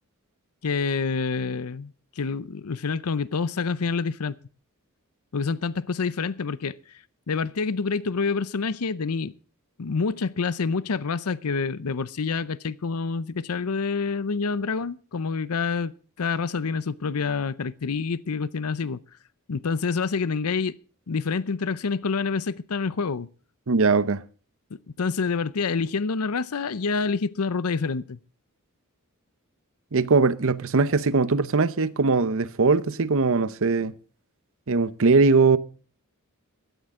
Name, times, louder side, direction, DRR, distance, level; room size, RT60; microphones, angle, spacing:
voice 1, 0.6-4.4 5.3-6.8 7.3-9.3 9.8-19.0 19.5-20.8 21.1-23.3 24.7-28.2, left 4 dB, 90° left, 0.6 m, -27 dB
voice 2, 23.7-24.2 29.9-33.9 34.7-35.6, right 4 dB, 65° right, 0.8 m, -21 dB
16.0 x 13.5 x 3.7 m
head